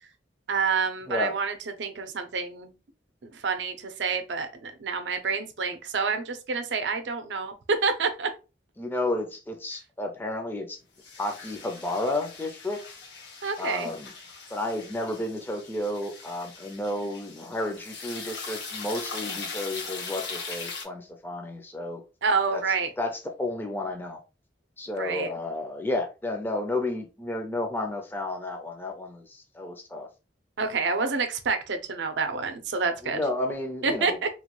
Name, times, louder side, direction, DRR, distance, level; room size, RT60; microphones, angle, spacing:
voice 1, 0.5-2.7 3.2-8.3 13.4-13.9 22.2-22.9 25.0-25.3 30.6-33.2 33.8-34.3, right 4 dB, 85° right, 0.5 m, -28 dB
voice 2, 8.8-10.8 11.2-12.8 13.6-14.1 14.5-22.0 22.5-22.6 23.0-24.2 24.8-30.1 33.0-34.2, left 1 dB, 10° left, 0.4 m, -32 dB
sound 1, 11.0-20.8, left 4 dB, 80° left, 1.0 m, -40 dB
3.0 x 2.2 x 2.9 m
head